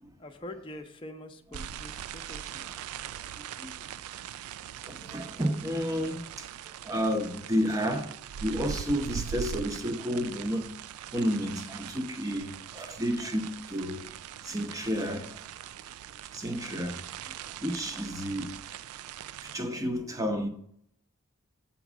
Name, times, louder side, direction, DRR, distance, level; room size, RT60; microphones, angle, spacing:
voice 1, 0.2-2.4, left 1 dB, 25° left, 0.7 m, -44 dB
sound 1, 1.5-19.6, right 9 dB, 85° right, 0.3 m, -41 dB
voice 2, 3.2-3.7 4.8-6.5 6.8-8.1 8.4-10.7 11.1-14.1 14.4-15.4 16.3-17.0 17.6-18.5 19.4-20.5, equal, 15° right, 0.7 m, -31 dB
7.3 x 4.5 x 6.1 m
head